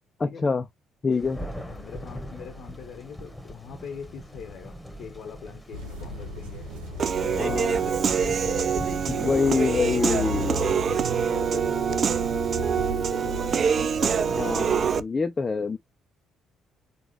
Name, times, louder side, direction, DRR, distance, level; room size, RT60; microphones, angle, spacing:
voice 1, 0.2-0.6 1.0-1.4 7.4-7.8 9.1-10.6 14.3-15.8, left 4 dB, 35° left, 0.6 m, -26 dB
Thunder, 1.1-11.9, equal, 5° left, 1.4 m, -41 dB
voice 2, 1.7-6.7 7.1-8.8 9.1-9.3 9.8-13.7 14.0-14.7, left 6 dB, 65° left, 0.9 m, -42 dB
sound 1, 5.7-15.0, equal, 90° right, 1.0 m, -35 dB
Human voice / Piano, 7.0-15.0, right 7 dB, 50° right, 0.3 m, -25 dB
3.9 x 2.4 x 4.5 m
hypercardioid pair, 50°, 0 cm